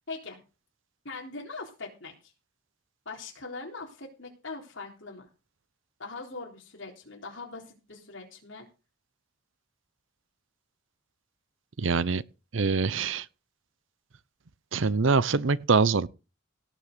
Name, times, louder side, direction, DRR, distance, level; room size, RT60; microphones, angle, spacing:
voice 1, 0.1-0.4 1.0-2.1 3.1-5.3 6.0-8.7, left 3 dB, 60° left, 3.9 m, -41 dB
voice 2, 11.8-12.2 12.5-13.3 14.7-16.1, right 4 dB, 65° right, 0.7 m, -24 dB
17.5 x 6.2 x 6.8 m
head